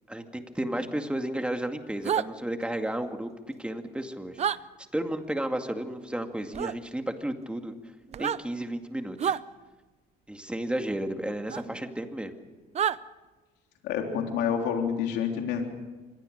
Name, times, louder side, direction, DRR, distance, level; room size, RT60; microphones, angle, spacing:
voice 1, 0.1-3.3 3.6-4.4 4.9-7.7 8.2-9.4 10.3-12.4, right 1 dB, 5° right, 5 dB, 2.2 m, -32 dB
sound 1, 2.0-2.3 4.4-4.6 6.5-6.7 8.1-8.4 9.2-9.4 11.5-11.6 12.7-13.0, right 9 dB, 40° right, 0.6 m, -27 dB
voice 2, 13.8-15.7, left 7 dB, 85° left, 2 dB, 3.5 m, -28 dB
25.5 x 21.0 x 6.7 m, 1.3 s
cardioid pair, 110°, 17 cm